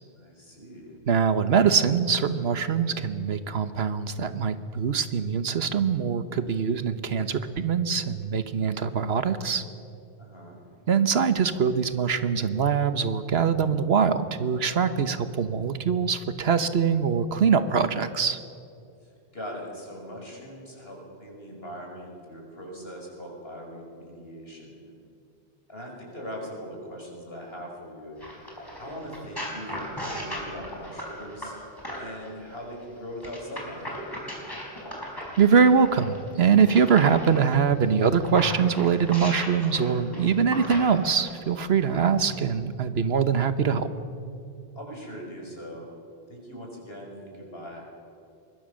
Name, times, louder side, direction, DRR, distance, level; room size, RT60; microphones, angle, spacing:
voice 1, 0.2-1.0 10.2-10.6 19.0-24.9 25.7-28.3 28.8-31.5 31.9-34.0 44.7-45.9 46.3-47.9, equal, 70° left, 0 dB, 5.7 m, -40 dB
voice 2, 1.1-9.6 10.9-18.4 35.4-43.9, right 6 dB, 80° right, 11 dB, 1.3 m, -23 dB
sound 1, 28.2-32.3 33.2-37.4 38.0-41.4 42.2-42.3, equal, 20° left, 5.0 m, -37 dB
24.5 x 21.0 x 6.5 m, 2.5 s
omnidirectional pair, 1.0 m